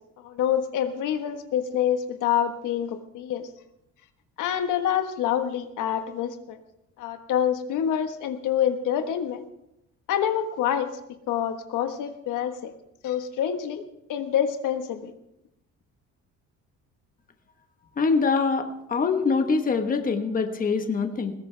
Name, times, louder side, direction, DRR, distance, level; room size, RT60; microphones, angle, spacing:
voice 1, 0.2-3.5 4.4-6.6 7.0-9.5 10.1-10.9 11.3-12.7 13.0-13.8 14.1-15.1, left 9 dB, 75° left, 7 dB, 1.5 m, -26 dB
voice 2, 18.0-21.3, left 4 dB, 25° left, 6 dB, 1.3 m, -24 dB
20.0 x 16.0 x 3.4 m, 0.82 s
cardioid pair, 140°, 31 cm